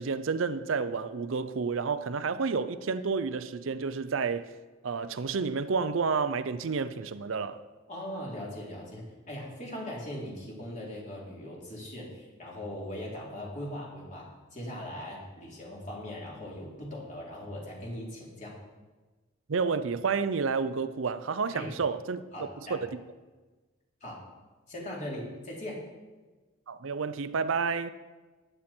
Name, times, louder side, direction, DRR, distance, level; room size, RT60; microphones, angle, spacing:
voice 1, 0.0-4.5 4.8-7.6 19.5-22.2 22.7-23.0 26.7-27.9, right 5 dB, 70° right, 0.5 m, -30 dB
voice 2, 7.9-18.5 21.5-21.7 22.3-22.8 24.0-24.2 24.7-25.8, left 1 dB, 35° left, 3.4 m, -40 dB
14.5 x 10.0 x 4.4 m
head